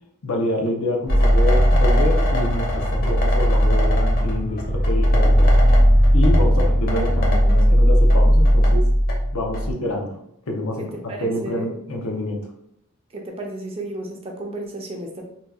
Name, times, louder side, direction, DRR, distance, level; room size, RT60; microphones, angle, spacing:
voice 1, 0.2-5.6 6.1-8.9 9.3-10.2 10.5-10.9 11.2-12.4, left 1 dB, 80° left, 1 dB, 0.7 m, -27 dB
sound 1, 1.1-9.7, equal, 45° left, 0.8 m, -17 dB
voice 2, 11.1-11.7 13.1-15.2, right 1 dB, 25° right, 1 dB, 0.5 m, -33 dB
2.8 x 2.3 x 3.5 m, 0.77 s
head